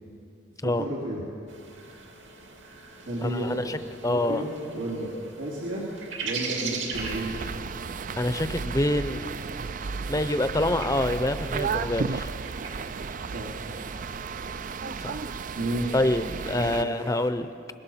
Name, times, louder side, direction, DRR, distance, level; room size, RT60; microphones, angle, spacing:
voice 1, 0.8-1.2 3.1-3.7 4.1-5.8 6.2-7.4 13.2-13.7 15.5-15.9 16.5-16.9, right 1 dB, 90° right, -6 dB, 3.5 m, -32 dB
sound 1, 1.5-17.3, right 4 dB, 70° right, 2.7 m, -42 dB
voice 2, 3.2-3.8 4.0-4.4 8.2-9.3 10.1-12.3 15.0-15.2 15.9-17.5, left 1 dB, 15° left, 11 dB, 0.7 m, -26 dB
sound 2, 6.9-16.8, right 5 dB, 40° right, 0.4 m, -33 dB
25.5 x 21.0 x 5.7 m, 2.6 s
head